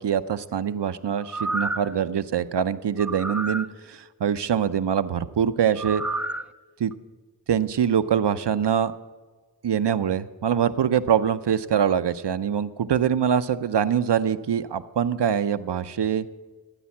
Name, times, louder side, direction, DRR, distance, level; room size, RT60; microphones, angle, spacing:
voice 1, 0.0-6.0 6.8-6.9 7.5-8.9 9.6-16.2, right 8 dB, 80° right, 12 dB, 0.6 m, -24 dB
sound 1, 1.2-2.0 3.0-3.7 5.8-6.5 6.9-7.0, right 2 dB, 5° right, 0.4 m, -30 dB
16.0 x 9.5 x 7.2 m, 1.4 s
wide cardioid pair, 40°, 41 cm